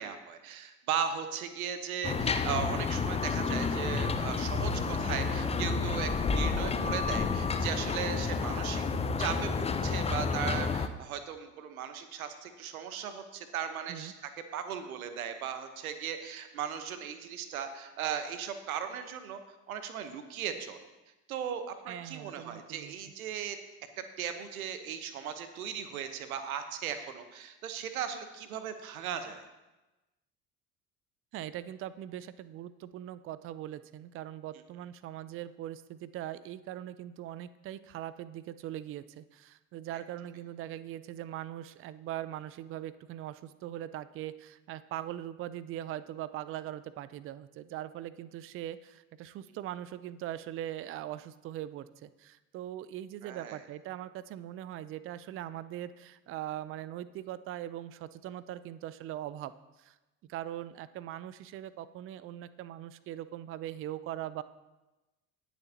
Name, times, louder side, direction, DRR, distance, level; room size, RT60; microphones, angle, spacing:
voice 1, 0.0-8.8 9.2-19.4 19.7-20.8 21.3-23.6 24.0-29.5 53.2-53.6, right 8 dB, 75° right, 9 dB, 1.1 m, -37 dB
sound 1, 2.0-10.9, left 4 dB, 15° left, 0.6 m, -30 dB
voice 2, 21.9-22.9 31.3-59.5 59.8-59.9 60.2-64.4, right 12 dB, 30° right, 16 dB, 0.4 m, -41 dB
18.5 x 7.1 x 2.8 m, 1.1 s
figure-of-eight pair, 60°, 43 cm